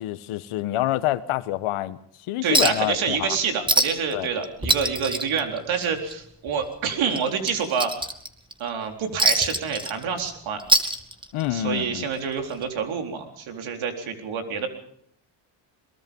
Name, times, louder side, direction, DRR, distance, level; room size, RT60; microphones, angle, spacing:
voice 1, 0.0-2.0 2.3-3.4 4.1-4.3 11.3-12.1, left 14 dB, 80° left, 1.4 m, -27 dB
voice 2, 2.4-8.0 8.6-10.6 11.5-14.7, right 6 dB, 70° right, 4.2 m, -27 dB
Chink clink, 2.5-2.9 3.2-3.3 3.7-4.1 4.4-6.1 6.5-6.6 7.1-8.5 9.2-10.3 10.6-11.5 12.6-12.7, right 1 dB, 10° right, 2.1 m, -23 dB
23.0 x 22.0 x 5.4 m
cardioid pair, 85°, 49 cm